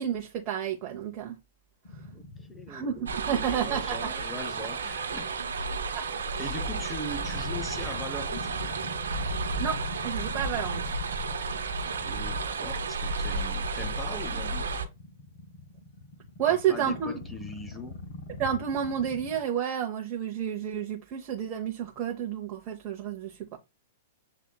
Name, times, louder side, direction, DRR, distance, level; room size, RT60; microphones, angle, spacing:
voice 1, 0.0-1.4 2.7-4.0 5.9-6.1 9.6-10.8 16.4-17.2 18.4-23.4, right 9 dB, 40° right, 0.8 m, -30 dB
sound 1, 1.8-19.4, left 2 dB, 60° left, 1.1 m, -43 dB
voice 2, 2.1-3.1 3.3-5.3 6.4-8.7 12.0-14.7 16.5-18.0, left 1 dB, 5° left, 0.6 m, -41 dB
sound 2, 3.1-14.9, right 3 dB, 70° right, 1.3 m, -32 dB
7.8 x 2.8 x 2.2 m
figure-of-eight pair, 105°, 0 cm